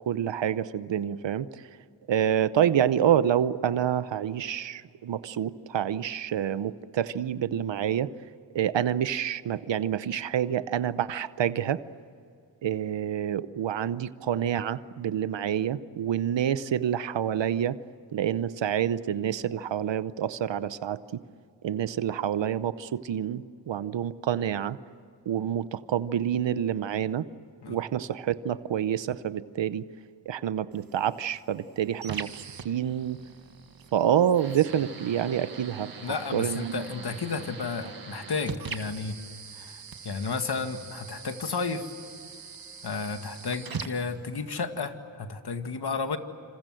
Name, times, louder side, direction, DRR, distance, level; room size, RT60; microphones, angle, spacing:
voice 1, 0.1-1.6 2.1-8.1 8.5-11.8 12.6-17.8 18.1-21.2 21.6-24.8 25.3-27.2 27.7-29.8 30.3-33.2 33.9-35.9 36.3-36.8, right 9 dB, 85° right, 15 dB, 0.8 m, -27 dB
sound 1, 30.7-44.7, right 6 dB, 55° right, 1.8 m, -42 dB
voice 2, 36.0-39.2 39.6-41.9 42.8-46.2, left 4 dB, 60° left, 7 dB, 2.1 m, -32 dB
27.5 x 27.5 x 7.7 m, 2.4 s
wide cardioid pair, 80°, 43 cm